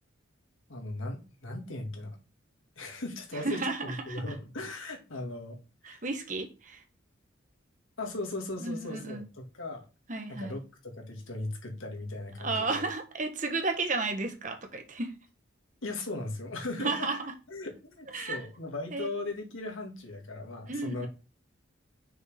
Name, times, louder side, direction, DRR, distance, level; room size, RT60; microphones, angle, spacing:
voice 1, 0.7-2.2 2.8-5.6 5.8-6.0 8.0-9.9 10.4-12.8 15.8-17.1 17.5-21.1, left 2 dB, 85° left, 2 dB, 2.1 m, -38 dB
voice 2, 3.3-4.2 5.8-6.8 8.6-9.3 10.1-10.6 12.4-15.1 16.8-17.3 18.1-18.4 18.9-19.1 20.7-21.1, right 3 dB, 40° right, 5 dB, 1.2 m, -33 dB
6.2 x 5.3 x 3.5 m, 0.31 s
head